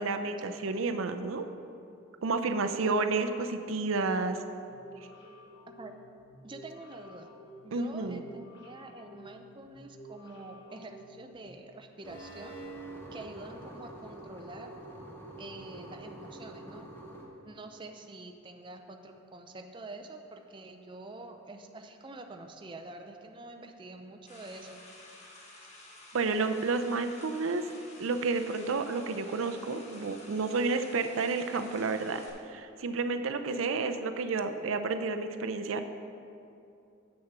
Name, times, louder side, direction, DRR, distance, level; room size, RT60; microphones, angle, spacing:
voice 1, 0.0-1.4 2.2-4.4 7.7-8.2 26.1-27.6 28.0-32.2 32.5-35.8, right 3 dB, 80° right, 8 dB, 0.5 m, -30 dB
sound 1, 4.7-11.6, equal, 55° left, 1.7 m, -52 dB
voice 2, 6.4-7.3 7.6-12.6 13.1-14.7 15.4-16.8 17.4-24.8, right 2 dB, 25° right, 5 dB, 0.5 m, -46 dB
sound 2, 12.0-17.3, right 2 dB, 10° left, 0.9 m, -46 dB
sound 3, 24.3-32.3, left 2 dB, 35° left, 1.3 m, -52 dB
8.0 x 6.5 x 5.9 m, 2.7 s
head